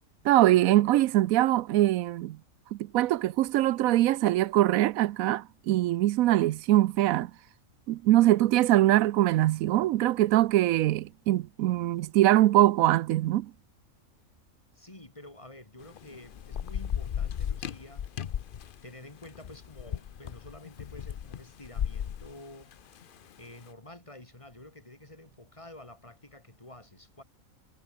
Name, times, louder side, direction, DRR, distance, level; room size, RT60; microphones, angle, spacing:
voice 1, 0.2-2.4 2.7-7.3 7.9-13.5, right 15 dB, 85° right, 1.0 m, -23 dB
voice 2, 14.7-18.1 18.8-22.7 23.4-27.2, left 1 dB, 25° left, 2.7 m, -49 dB
Thunder / Rain, 15.8-23.4, left 9 dB, 50° left, 0.7 m, -36 dB
omnidirectional pair, 1.4 m